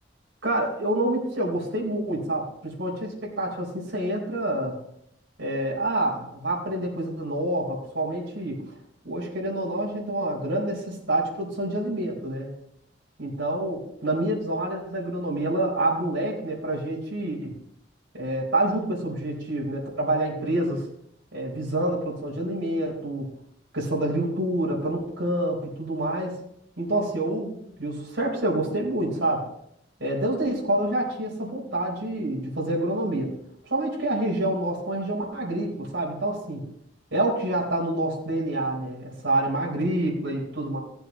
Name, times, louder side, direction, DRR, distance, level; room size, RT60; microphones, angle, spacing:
voice 1, 0.4-4.8 5.4-8.6 9.0-12.5 13.2-17.5 18.1-20.8 21.3-23.3 23.7-26.4 26.8-29.4 30.0-33.3 33.7-36.6 37.1-40.8, right 1 dB, 85° right, -4 dB, 4.2 m, -27 dB
17.5 x 7.9 x 3.1 m, 0.73 s
head